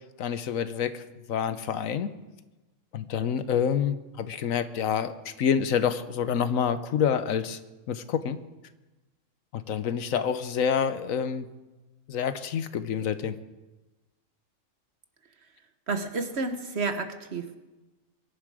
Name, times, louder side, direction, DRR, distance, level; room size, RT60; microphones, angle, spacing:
voice 1, 0.2-1.0 1.3-2.1 2.9-7.6 7.9-8.4 9.5-11.5 12.1-13.4, left 7 dB, 85° left, 12 dB, 1.2 m, -27 dB
voice 2, 15.9-17.6, right 3 dB, 55° right, 8 dB, 1.4 m, -30 dB
22.5 x 11.5 x 4.9 m, 1.1 s
omnidirectional pair, 1.4 m